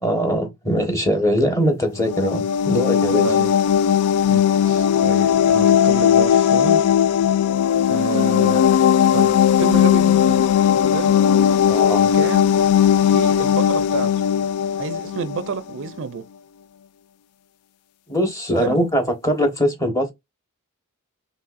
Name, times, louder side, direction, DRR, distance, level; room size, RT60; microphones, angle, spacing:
voice 1, 0.0-3.3 11.7-12.1 18.1-20.1, equal, 15° left, 1.2 m, -21 dB
sound 1, 2.0-15.6, left 9 dB, 85° left, 0.3 m, -17 dB
voice 2, 3.1-3.5 4.3-6.8 7.7-8.7 9.1-10.5 10.9-11.2 12.1-12.6 13.0-14.3 14.8-16.2 18.6-18.8, right 5 dB, 60° right, 0.4 m, -29 dB
5.6 x 3.0 x 2.5 m
head